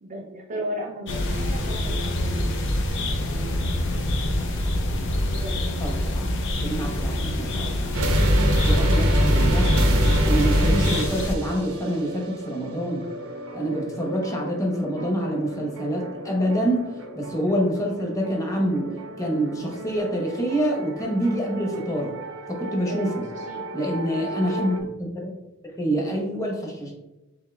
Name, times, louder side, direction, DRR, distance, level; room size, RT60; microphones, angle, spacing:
voice 1, 0.0-2.6 3.4-3.6 5.2-5.7 22.9-23.7, right 1 dB, 35° right, -1 dB, 0.5 m, -36 dB
sound 1, 1.1-11.4, left 1 dB, 60° left, 0.7 m, -26 dB
voice 2, 5.8-6.3 6.6-7.9 8.5-9.8 10.2-13.1 13.5-16.9 17.1-18.9 19.2-22.1 22.5-23.1 23.7-25.3 25.6-26.9, right 1 dB, 15° left, -1 dB, 1.0 m, -26 dB
sound 2, 7.9-24.8, equal, 80° right, 0.8 m, -26 dB
7.4 x 2.8 x 2.3 m, 0.98 s
head